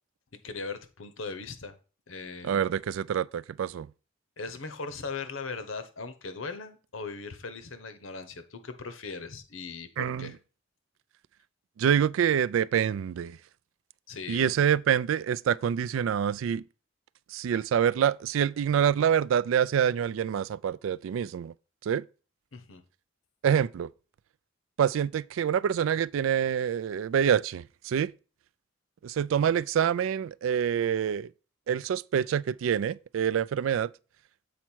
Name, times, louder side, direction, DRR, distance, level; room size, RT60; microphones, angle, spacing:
voice 1, 0.4-1.8 2.1-2.6 4.4-10.4 14.1-14.5 17.5-17.6 22.5-22.8, left 4 dB, 85° left, 1.0 m, -39 dB
voice 2, 2.4-3.9 10.0-10.3 11.8-13.4 14.3-16.6 17.3-21.5 21.8-22.0 23.4-23.9 24.8-28.1 29.0-31.3 31.7-33.9, right 8 dB, 80° right, 0.3 m, -26 dB
7.2 x 4.5 x 4.4 m
head